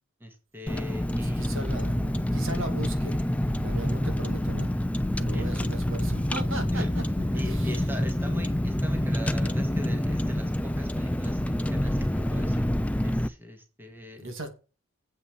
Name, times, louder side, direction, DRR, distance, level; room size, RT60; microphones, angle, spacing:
voice 1, 0.2-1.5 5.3-5.6 6.7-6.9 7.3-12.7 13.0-14.3, left 1 dB, 10° right, 2.0 m, -41 dB
Car, 0.7-13.3, left 1 dB, 5° left, 0.4 m, -27 dB
voice 2, 1.2-3.3 3.5-4.7 5.2-7.7 14.1-14.5, right 1 dB, 65° right, 2.5 m, -37 dB
8.3 x 5.7 x 7.3 m
head